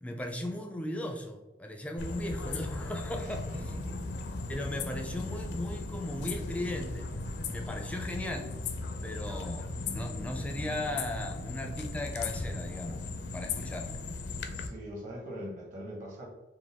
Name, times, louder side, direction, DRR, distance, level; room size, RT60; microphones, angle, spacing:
voice 1, 0.0-3.5 4.5-7.1 7.5-8.5 9.0-13.9, left 1 dB, 5° left, 3 dB, 0.4 m, -37 dB
sound 1, 2.0-14.7, left 3 dB, 60° left, 0.5 m, -37 dB
voice 2, 3.1-4.1 14.5-16.3, equal, 45° right, -2 dB, 1.2 m, -42 dB
5.1 x 2.2 x 3.5 m, 1.0 s
head